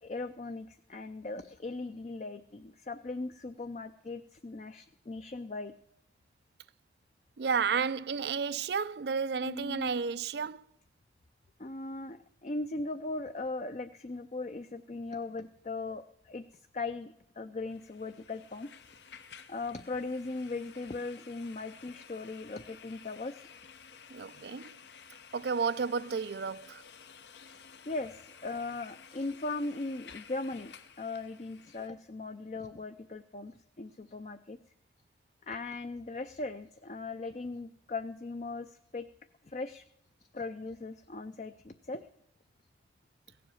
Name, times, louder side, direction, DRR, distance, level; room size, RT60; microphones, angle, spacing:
voice 1, 0.0-5.7 9.4-9.9 11.6-16.4 16.7-18.7 19.5-23.5 27.9-34.6 35.5-39.1 39.4-39.8 40.3-42.1, left 3 dB, 40° left, 0.5 m, -39 dB
voice 2, 7.4-10.6 24.1-24.7 25.3-26.8, right 5 dB, 70° right, 0.4 m, -32 dB
sound 1, 17.7-31.9, left 6 dB, 85° left, 0.9 m, -53 dB
16.5 x 7.7 x 7.0 m
head